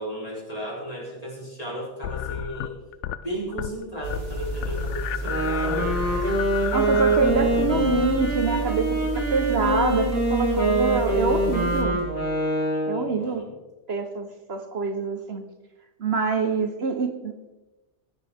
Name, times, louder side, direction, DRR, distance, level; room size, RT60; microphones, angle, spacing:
voice 1, 0.0-2.8 3.2-6.8 12.9-13.5, equal, 30° left, -3 dB, 3.8 m, -35 dB
sound 1, 2.0-3.2 3.5-3.8 4.1-8.9, left 11 dB, 80° left, 0.9 m, -33 dB
sound 2, 4.0-11.8, right 2 dB, 85° right, 1.9 m, -32 dB
Wind instrument woodwind instrument, 5.1-13.1, right 1 dB, 10° left, 4.1 m, -25 dB
voice 2, 6.7-12.0 12.9-13.4 13.9-15.4 16.0-17.3, right 4 dB, 60° right, 6 dB, 1.3 m, -25 dB
16.5 x 10.5 x 3.6 m, 1.1 s
omnidirectional pair, 1.2 m